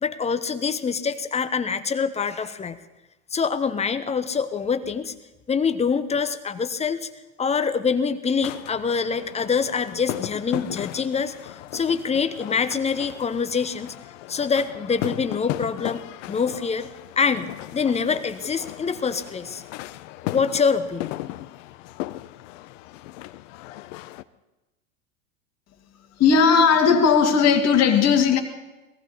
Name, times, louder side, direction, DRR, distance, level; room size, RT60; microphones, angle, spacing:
voice 1, 0.0-2.8 3.3-5.1 5.5-7.1 7.4-13.9 14.3-16.9 17.2-19.6 20.2-21.2, left 5 dB, 15° left, 12 dB, 0.9 m, -25 dB
sound 1, 8.4-24.2, left 16 dB, 60° left, 0.8 m, -36 dB
voice 2, 26.2-28.4, left 6 dB, 35° left, 5 dB, 2.3 m, -17 dB
21.5 x 15.0 x 4.2 m, 1.1 s
hypercardioid pair, 105°, 43 cm